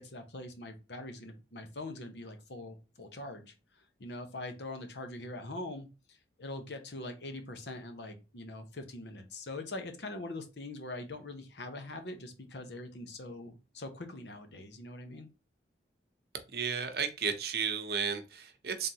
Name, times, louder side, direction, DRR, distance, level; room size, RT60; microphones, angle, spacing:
voice 1, 0.0-3.5 4.0-15.3, left 2 dB, 75° left, 6 dB, 1.0 m, -43 dB
voice 2, 16.5-18.9, right 6 dB, 60° right, 6 dB, 0.8 m, -33 dB
3.8 x 3.5 x 2.8 m, 0.29 s
head